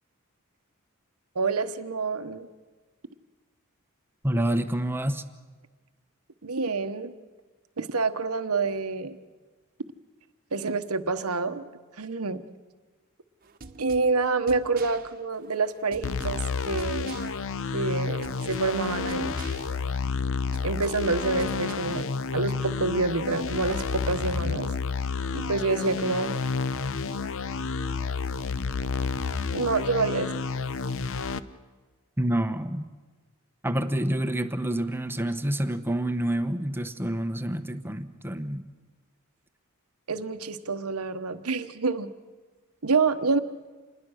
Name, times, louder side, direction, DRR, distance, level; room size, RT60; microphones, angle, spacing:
voice 1, 1.3-2.5 6.4-7.1 7.8-9.2 10.5-11.7 12.0-12.4 13.8-17.1 17.7-19.3 20.6-22.1 22.3-24.7 25.3-26.4 29.5-30.4 40.1-42.1 42.8-43.4, right 3 dB, 80° right, 10 dB, 1.1 m, -27 dB
voice 2, 4.2-5.2 32.2-32.9 33.6-38.6, right 1 dB, 10° right, 9 dB, 1.0 m, -28 dB
sound 1, 13.4-21.7, right 3 dB, 40° right, 1.2 m, -47 dB
sound 2, 16.0-31.4, left 4 dB, 65° left, 0.8 m, -30 dB
27.5 x 20.5 x 6.4 m, 1.3 s
head